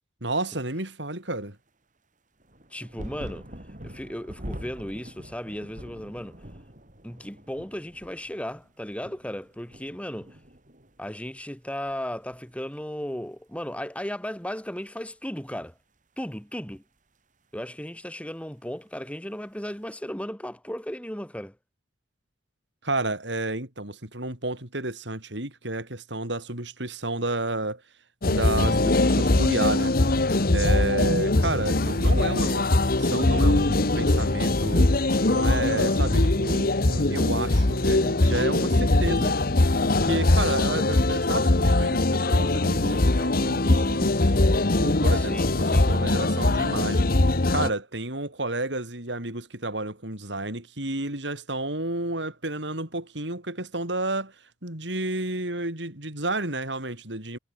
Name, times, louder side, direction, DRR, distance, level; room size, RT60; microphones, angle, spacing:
voice 1, 0.2-1.6 22.8-27.8 28.3-30.0 30.5-34.9 35.2-39.4 39.8-44.3 44.8-47.1 47.5-57.4, right 2 dB, 70° right, 5.8 m, -31 dB
sound 1, 2.4-11.5 11.7-12.6 13.6-13.7, equal, 45° right, 6.4 m, -44 dB
voice 2, 2.7-3.5 3.8-6.4 7.0-10.4 11.0-15.7 16.2-16.8 17.5-21.6 45.1-45.9, equal, 5° left, 3.6 m, -35 dB
sound 2, 28.2-47.7, left 2 dB, 50° left, 1.3 m, -22 dB
head